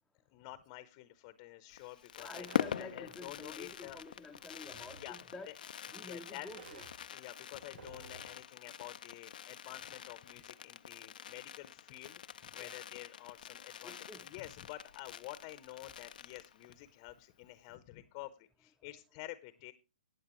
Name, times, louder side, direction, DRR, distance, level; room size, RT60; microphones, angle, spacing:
voice 1, 0.3-4.0 4.9-5.2 5.5-5.6 6.0-6.5 7.1-14.0 14.2-19.7, left 16 dB, 30° left, 14 dB, 0.8 m, -49 dB
Fireworks, 1.7-16.9 17.2-17.3 17.5-17.8, left 9 dB, 65° left, 0.5 m, -44 dB
voice 2, 2.2-5.5 5.9-6.8 12.6-12.7 13.8-14.3, left 2 dB, ahead, -1 dB, 0.7 m, -49 dB
sound 1, 2.4-2.9 4.0-5.2 6.5-7.0 7.5-8.4, right 4 dB, 75° right, 3.8 m, -55 dB
16.0 x 9.2 x 3.1 m, 0.29 s
hypercardioid pair, 145°, 5 cm